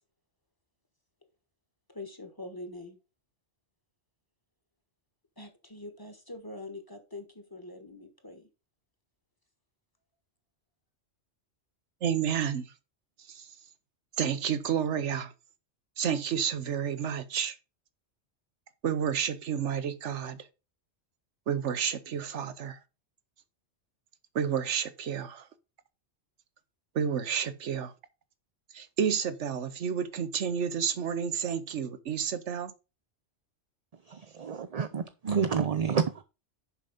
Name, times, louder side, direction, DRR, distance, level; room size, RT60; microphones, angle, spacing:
voice 1, 1.9-3.0 5.4-8.5, left 2 dB, 20° left, 1.4 m, -44 dB
voice 2, 12.0-12.7 13.3-13.5 14.2-15.3 16.0-17.6 18.8-20.5 21.5-22.8 24.3-25.5 26.9-27.9 28.7-32.7, right 8 dB, 85° right, 1.2 m, -30 dB
voice 3, 34.1-36.2, right 6 dB, 40° right, 0.6 m, -29 dB
7.2 x 5.7 x 5.0 m
omnidirectional pair, 1.2 m